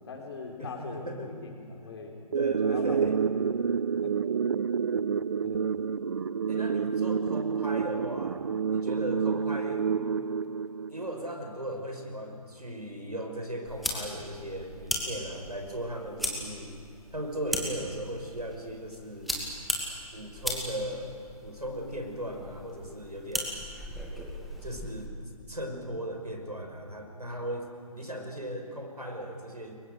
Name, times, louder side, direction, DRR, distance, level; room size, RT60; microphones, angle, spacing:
voice 1, 0.0-2.1 2.6-3.1 3.6-4.1 5.4-5.7, left 4 dB, 45° left, 1 dB, 4.9 m, -42 dB
voice 2, 0.6-1.4 2.3-3.2 6.5-9.9 10.9-16.7 17.1-19.4 20.1-23.6 24.6-25.1 25.5-29.8, equal, 90° right, 4 dB, 5.6 m, -37 dB
sound 1, 2.3-11.3, right 6 dB, 45° right, 0.5 m, -29 dB
sound 2, 13.7-25.1, equal, ahead, 2.2 m, -37 dB
30.0 x 23.0 x 6.7 m, 2.5 s
figure-of-eight pair, 140°, 20 cm